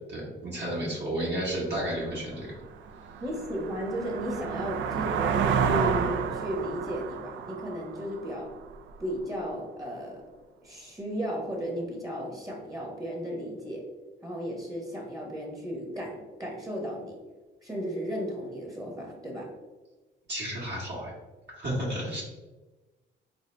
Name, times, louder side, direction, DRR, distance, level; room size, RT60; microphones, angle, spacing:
voice 1, 0.1-2.6 20.3-21.1 21.5-22.2, right 1 dB, 60° right, -5 dB, 1.3 m, -32 dB
sound 1, 1.8-1.9 2.4-9.0, right 6 dB, 75° right, 0.4 m, -30 dB
voice 2, 3.2-8.5 9.0-10.2 10.6-13.8 14.2-17.2 17.6-19.5, equal, 15° right, -1 dB, 0.9 m, -34 dB
3.9 x 2.7 x 3.2 m, 1.2 s
cardioid pair, 90°, 20 cm